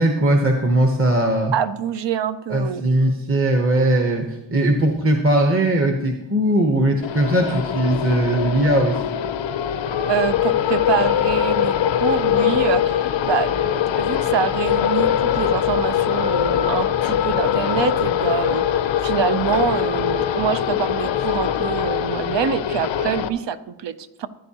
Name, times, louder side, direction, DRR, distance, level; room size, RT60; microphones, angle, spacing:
voice 1, 0.0-1.5 2.5-9.2, right 1 dB, 30° right, 3 dB, 1.0 m, -19 dB
voice 2, 1.5-2.8 10.0-18.6 19.0-24.3, right 8 dB, 70° right, 12 dB, 0.7 m, -25 dB
sound 1, 7.0-23.3, left 10 dB, 80° left, 0.6 m, -22 dB
14.5 x 11.0 x 2.9 m, 0.93 s
wide cardioid pair, 100°, 44 cm